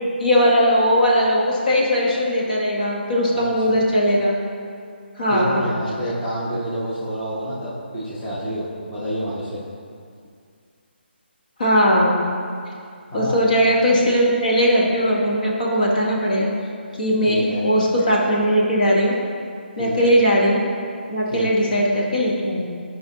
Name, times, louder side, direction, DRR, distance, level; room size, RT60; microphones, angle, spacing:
voice 1, 0.2-4.4 5.2-5.6 11.6-12.3 13.1-16.5 17.0-19.2 19.8-20.6 21.1-22.7, equal, 45° left, -4 dB, 1.3 m, -19 dB
voice 2, 3.3-3.8 5.3-9.6 13.1-13.3 17.3-17.6 19.8-20.1 21.3-21.5, equal, 10° left, -12 dB, 1.0 m, -28 dB
11.5 x 5.1 x 2.8 m, 2.3 s
hypercardioid pair, 180°, 6 cm